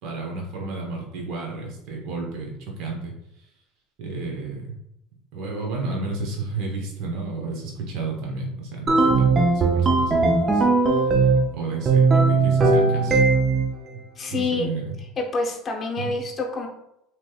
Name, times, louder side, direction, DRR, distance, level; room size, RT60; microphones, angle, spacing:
voice 1, 0.0-3.5 4.0-4.8 5.3-13.2 14.3-15.0 16.0-16.1, right 3 dB, 65° right, 0 dB, 0.9 m, -32 dB
sound 1, 8.9-11.5 11.8-13.7, right 3 dB, 30° right, 0.5 m, -18 dB
voice 2, 14.2-14.7 15.2-16.7, left 3 dB, 30° left, 0 dB, 0.7 m, -27 dB
3.2 x 3.0 x 2.3 m, 0.81 s
supercardioid pair, 110°, 0 cm